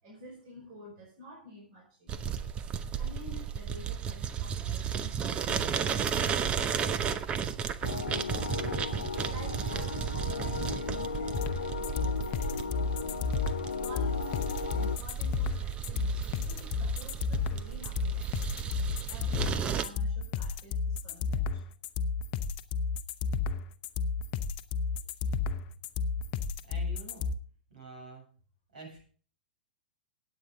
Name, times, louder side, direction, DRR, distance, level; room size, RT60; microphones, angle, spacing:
voice 1, 0.0-2.3 3.0-7.5 9.2-13.2 13.8-18.5 19.1-21.6, equal, 40° right, -1 dB, 5.3 m, -50 dB
sound 1, 2.1-19.8, right 8 dB, 20° right, 0.8 m, -34 dB
sound 2, 7.8-15.0, left 6 dB, 70° left, 0.6 m, -36 dB
sound 3, 11.3-27.3, left 5 dB, 35° left, 0.8 m, -32 dB
voice 2, 25.0-25.7 26.6-27.3 27.7-28.3 28.7-29.0, right 3 dB, 60° right, 1 dB, 7.2 m, -49 dB
17.5 x 8.6 x 3.8 m, 0.42 s
figure-of-eight pair, 105°, 5 cm